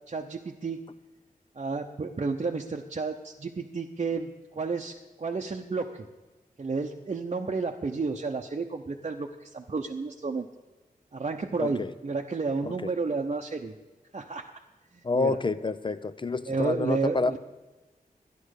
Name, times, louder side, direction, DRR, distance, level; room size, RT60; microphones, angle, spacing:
voice 1, 0.1-0.8 1.6-4.9 5.2-6.1 6.6-10.5 11.1-13.7 14.1-14.4 14.9-15.3 16.5-17.4, right 4 dB, 45° right, 1 dB, 0.8 m, -31 dB
voice 2, 11.6-11.9 12.6-12.9 15.0-17.4, left 3 dB, 35° left, 13 dB, 0.6 m, -28 dB
12.0 x 10.5 x 6.5 m, 1.2 s
wide cardioid pair, 80°, 15 cm